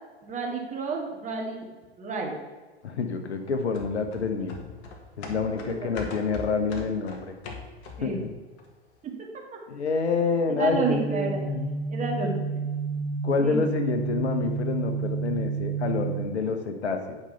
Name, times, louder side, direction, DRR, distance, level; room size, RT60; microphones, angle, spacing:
voice 1, 0.2-1.7 2.0-2.3 5.3-5.9 8.0-8.2 9.0-9.6 10.5-11.4 11.9-12.6 13.3-13.6, right 4 dB, 20° right, 0 dB, 1.9 m, -31 dB
voice 2, 2.8-4.6 5.2-7.3 8.0-8.2 9.7-11.7 13.2-17.2, left 5 dB, 75° left, 6 dB, 1.2 m, -28 dB
sound 1, 3.7-8.2 8.6-8.7, left 4 dB, 45° left, 1.8 m, -41 dB
sound 2, 10.7-16.2, right 5 dB, 75° right, 1.7 m, -30 dB
8.7 x 5.4 x 5.7 m, 1.3 s
figure-of-eight pair, 95°, 33 cm